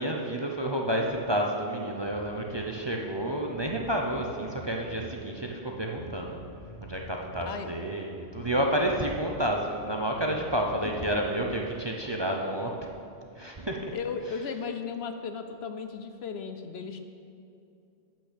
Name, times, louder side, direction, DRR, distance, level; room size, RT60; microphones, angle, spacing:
voice 1, 0.0-6.4 6.8-12.7 13.4-13.9, right 1 dB, 30° right, 0 dB, 0.6 m, -30 dB
Bass guitar, 2.0-2.7 3.2-3.3 3.5-5.2 5.9-7.6 8.3-9.5 9.7-11.6, left 1 dB, 45° left, 2.2 m, -46 dB
voice 2, 13.9-17.0, left 5 dB, 65° left, 7 dB, 0.9 m, -36 dB
8.9 x 6.0 x 8.3 m, 2.6 s
omnidirectional pair, 1.2 m